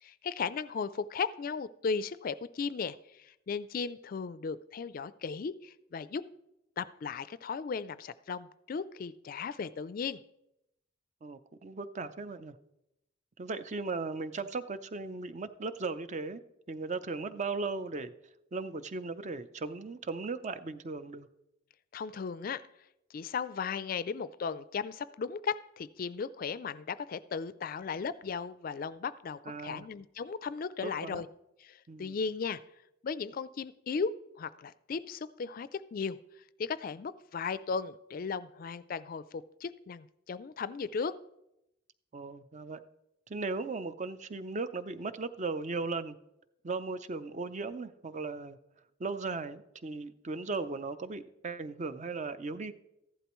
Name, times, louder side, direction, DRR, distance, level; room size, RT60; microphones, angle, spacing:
voice 1, 0.0-6.2 6.8-10.2 21.9-22.6 23.1-31.3 31.6-32.6 33.0-36.2 36.6-41.2, left 5 dB, 50° left, 16 dB, 0.4 m, -36 dB
voice 2, 11.2-12.5 13.4-16.4 16.7-18.1 18.5-21.3 29.5-29.9 30.8-31.2 31.9-32.2 42.1-42.8 43.3-46.2 46.6-48.6 49.0-52.7, right 3 dB, 40° right, 12 dB, 0.5 m, -37 dB
14.5 x 11.5 x 3.1 m, 0.86 s
head